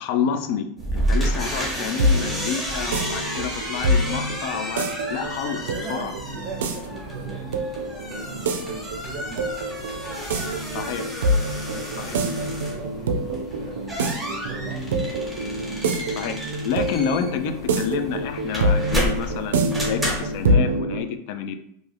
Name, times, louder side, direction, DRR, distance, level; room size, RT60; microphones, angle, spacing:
voice 1, 0.0-6.1 10.7-11.0 12.0-12.2 16.1-21.6, left 7 dB, 60° left, 8 dB, 0.3 m, -29 dB
sound 1, 0.8-20.5, right 1 dB, 5° right, 1.0 m, -31 dB
sound 2, 1.6-21.0, right 1 dB, 90° right, 0.4 m, -26 dB
Engine, 5.2-20.8, equal, 30° left, 0.9 m, -45 dB
voice 2, 5.6-7.5 7.9-9.7 10.8-15.4, right 4 dB, 30° right, 4 dB, 0.6 m, -41 dB
2.5 x 2.4 x 3.3 m, 0.70 s
supercardioid pair, 130°, 0 cm